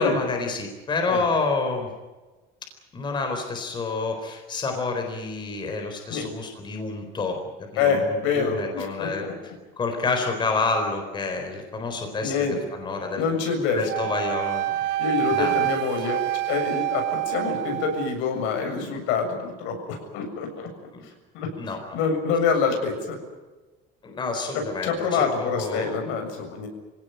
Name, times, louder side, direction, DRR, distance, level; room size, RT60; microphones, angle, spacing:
voice 1, 0.0-1.9 2.9-7.4 7.8-9.2 9.8-13.2 13.8-14.7 15.3-15.6 20.9-21.1 21.6-21.8 24.0-26.0, left 3 dB, 25° left, 4 dB, 4.2 m, -28 dB
voice 2, 7.8-9.3 12.2-12.6 13.2-13.8 15.0-20.7 21.3-21.5 21.9-23.2 24.5-26.7, left 5 dB, 80° left, 4 dB, 7.3 m, -26 dB
Wind instrument woodwind instrument, 13.9-18.2, right 15 dB, 65° right, 1.2 m, -27 dB
26.0 x 17.5 x 9.1 m, 1.2 s
cardioid pair, 170°, 20 cm